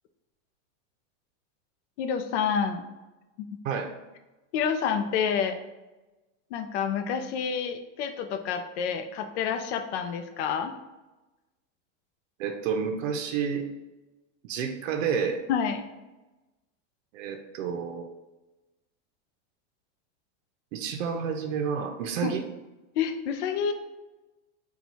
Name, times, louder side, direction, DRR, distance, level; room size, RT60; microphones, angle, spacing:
voice 1, 2.0-2.8 3.5-3.6 4.5-5.6 6.5-10.7 15.5-15.8 22.2-22.3 23.0-23.7, left 7 dB, 60° left, 7 dB, 0.5 m, -28 dB
voice 2, 12.4-13.6 14.4-15.4 17.1-18.1 20.7-22.4, right 6 dB, 80° right, 3 dB, 0.6 m, -30 dB
4.0 x 2.3 x 4.4 m, 1.1 s
supercardioid pair, 180°, 39 cm